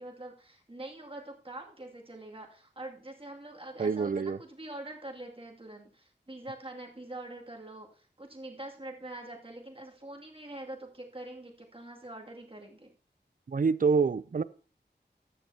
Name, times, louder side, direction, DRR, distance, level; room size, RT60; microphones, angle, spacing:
voice 1, 0.0-12.9, right 1 dB, 30° right, 0 dB, 2.3 m, -44 dB
voice 2, 3.8-4.4 13.5-14.4, right 5 dB, 50° right, 17 dB, 0.5 m, -26 dB
14.5 x 9.6 x 2.8 m, 0.41 s
wide cardioid pair, 60°, 18 cm